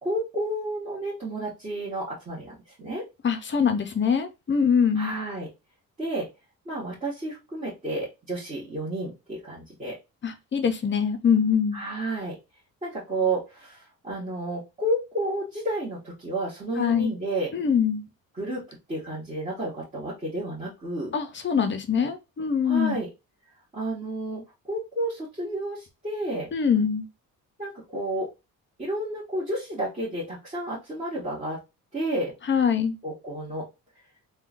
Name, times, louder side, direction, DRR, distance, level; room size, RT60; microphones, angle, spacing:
voice 1, 0.0-3.0 4.9-5.5 6.0-6.3 6.6-10.0 11.7-12.4 12.8-17.5 18.3-21.1 22.6-23.1 23.7-26.5 27.6-28.3 28.8-31.6 31.9-32.3 33.0-33.7, right 1 dB, 20° right, 1.4 m, -31 dB
voice 2, 3.2-5.1 10.2-11.8 16.8-17.1 17.5-18.0 21.1-23.0 26.5-27.1 32.5-33.0, left 7 dB, 30° left, 0.5 m, -23 dB
3.5 x 2.2 x 2.5 m
cardioid pair, 105°, 36 cm